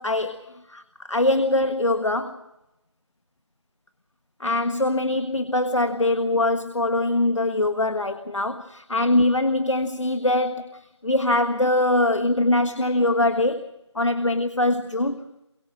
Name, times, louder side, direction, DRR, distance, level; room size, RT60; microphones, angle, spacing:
voice 1, 0.0-2.4 4.4-13.7 13.9-15.4, left 2 dB, 85° left, 9 dB, 1.5 m, -23 dB
23.5 x 23.0 x 6.3 m, 0.93 s
figure-of-eight pair, 175°, 15 cm